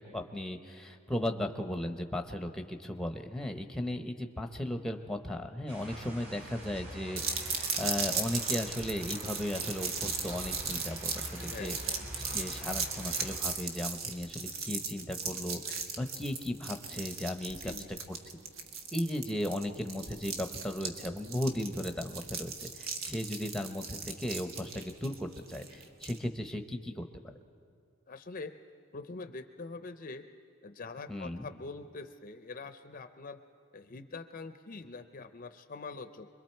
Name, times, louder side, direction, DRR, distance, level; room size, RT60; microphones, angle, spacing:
voice 1, 0.0-11.8 12.3-17.7 18.9-27.3 31.1-31.5, left 1 dB, 5° left, 6 dB, 0.8 m, -36 dB
sound 1, 5.7-13.4, equal, 35° right, 3.5 m, -45 dB
sound 2, 7.2-26.2, right 5 dB, 70° right, 1.3 m, -37 dB
voice 2, 11.3-12.0 17.6-17.9 28.1-28.5 28.9-30.3 30.6-33.4 33.7-36.3, left 3 dB, 40° left, 9 dB, 0.6 m, -44 dB
26.0 x 22.0 x 4.5 m, 2.3 s
head